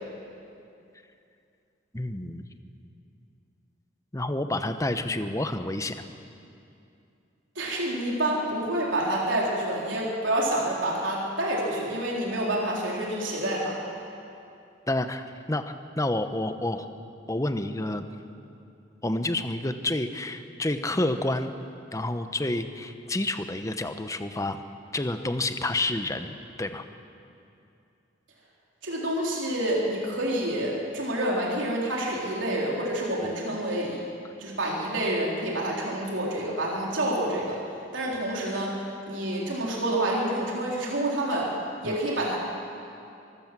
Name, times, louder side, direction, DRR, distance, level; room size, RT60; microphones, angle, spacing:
voice 1, 1.9-2.4 4.1-6.1 14.9-16.9 17.3-18.0 19.0-21.5 21.9-24.6 24.9-26.8 33.2-33.3 41.8-42.0, left 2 dB, 15° left, 9 dB, 0.9 m, -29 dB
voice 2, 7.6-13.7 28.8-34.0 34.4-37.6 37.9-38.7 39.1-41.5 41.8-42.4, right 1 dB, 85° right, -3 dB, 3.7 m, -28 dB
24.0 x 14.0 x 7.6 m, 2.6 s
head